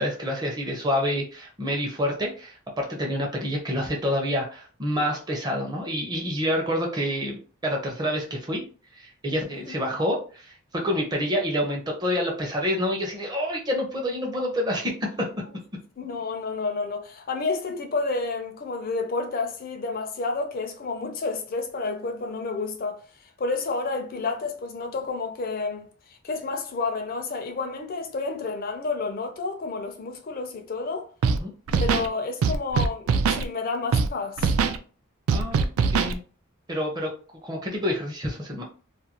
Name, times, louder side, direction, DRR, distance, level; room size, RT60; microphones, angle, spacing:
voice 1, 0.0-8.6 8.9-15.3 31.3-31.5 35.3-36.2 36.7-37.1 37.4-38.6, equal, 20° right, 0.6 m, -28 dB
voice 2, 16.0-23.0 23.4-31.1 31.8-34.5, left 3 dB, 40° left, 0.4 m, -30 dB
Scratching (performance technique), 31.2-31.4 31.7-32.1 32.4-33.4 33.9-34.1 34.4-34.8 35.3-36.1, right 5 dB, 75° right, 0.3 m, -22 dB
2.4 x 2.2 x 2.8 m
head